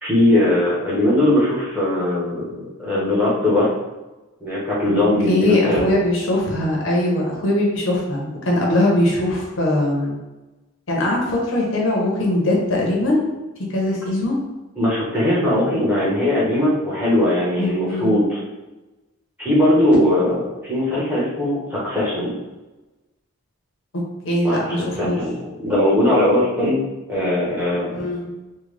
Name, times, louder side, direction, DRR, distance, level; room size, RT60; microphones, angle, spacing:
voice 1, 0.0-3.7 4.4-6.0 14.8-18.4 19.4-22.3 24.4-26.8 27.1-28.0, left 1 dB, 10° right, -8 dB, 0.9 m, -19 dB
voice 2, 5.3-10.2 10.9-13.2 13.7-14.4 17.6-18.1 24.2-25.2 27.9-28.3, left 1 dB, 60° left, -2 dB, 0.8 m, -21 dB
3.7 x 2.2 x 3.2 m, 1.1 s
head